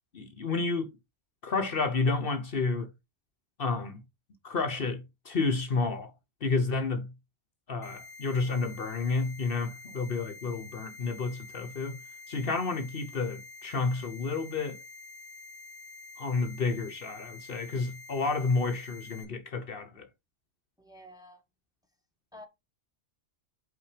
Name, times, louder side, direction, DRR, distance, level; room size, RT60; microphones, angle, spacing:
voice 1, 0.1-0.9 1.4-2.9 3.6-4.0 4.4-6.1 6.4-7.1 7.7-12.0 12.3-14.8 16.2-20.1, left 4 dB, 55° left, 1.1 m, -30 dB
sound 1, 7.8-19.2, left 4 dB, 20° left, 1.8 m, -48 dB
voice 2, 20.8-21.4 22.3-22.5, left 1 dB, 5° right, 1.4 m, -50 dB
5.6 x 4.2 x 4.9 m
omnidirectional pair, 1.2 m